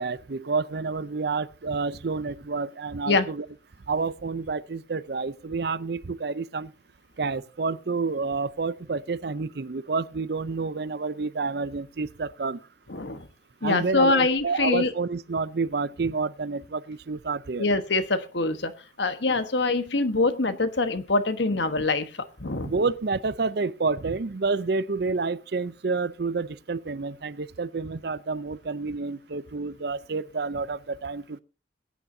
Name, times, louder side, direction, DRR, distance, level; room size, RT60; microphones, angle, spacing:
voice 1, 0.0-3.5 3.9-6.7 7.2-12.6 13.6-17.7 22.6-31.4, right 4 dB, 55° right, 0.5 m, -29 dB
voice 2, 12.9-13.3 13.6-14.9 17.6-18.7 19.0-22.1 22.4-22.7, left 3 dB, 65° left, 1.2 m, -24 dB
21.5 x 9.5 x 2.7 m
head